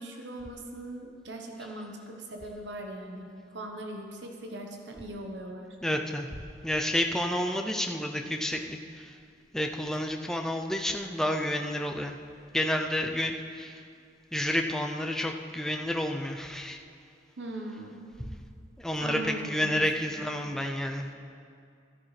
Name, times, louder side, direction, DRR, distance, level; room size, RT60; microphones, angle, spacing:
voice 1, 0.0-5.8 17.4-18.0 19.0-19.8 20.3-20.5, right 1 dB, 75° right, 2 dB, 1.0 m, -40 dB
voice 2, 5.8-9.2 9.5-12.2 12.5-13.8 14.3-16.8 18.8-21.1, left 1 dB, 5° left, 3 dB, 0.4 m, -30 dB
13.5 x 11.5 x 3.2 m, 2.4 s
head